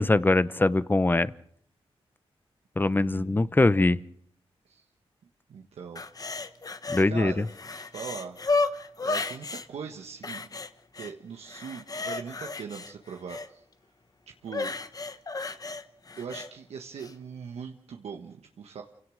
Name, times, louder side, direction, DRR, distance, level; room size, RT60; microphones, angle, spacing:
voice 1, 0.0-1.3 2.8-4.0 6.9-7.5, left 2 dB, 20° left, 16 dB, 0.8 m, -22 dB
voice 2, 2.9-3.5 4.6-4.8 5.5-6.0 7.0-8.4 9.0-10.4 10.9-13.6 14.4-14.7 16.2-18.8, right 6 dB, 85° right, 2 dB, 1.5 m, -40 dB
sound 1, 6.0-7.1 7.4-9.7 10.2-11.1 11.5-13.5 14.5-16.5 17.0-17.1, left 3 dB, 35° left, 1.2 m, -33 dB
28.5 x 17.5 x 6.4 m, 0.68 s
cardioid pair, 80°, 10 cm